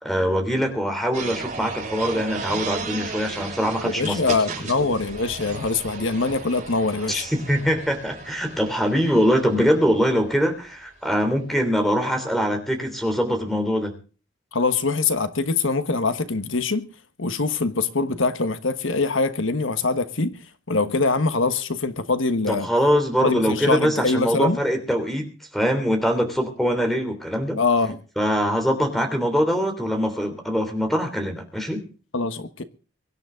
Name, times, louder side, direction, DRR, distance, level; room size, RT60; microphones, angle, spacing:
voice 1, 0.0-4.2 4.8-4.9 7.1-13.9 22.5-27.6 28.2-31.9, equal, ahead, 3.3 m, -23 dB
sound 1, 1.1-10.2, right 4 dB, 35° right, 7.0 m, -35 dB
voice 2, 3.8-7.2 14.5-16.9 17.2-20.4 20.7-22.7 23.2-24.6 27.6-28.0 32.1-32.6, left 3 dB, 80° left, 1.4 m, -23 dB
24.0 x 11.0 x 3.8 m
head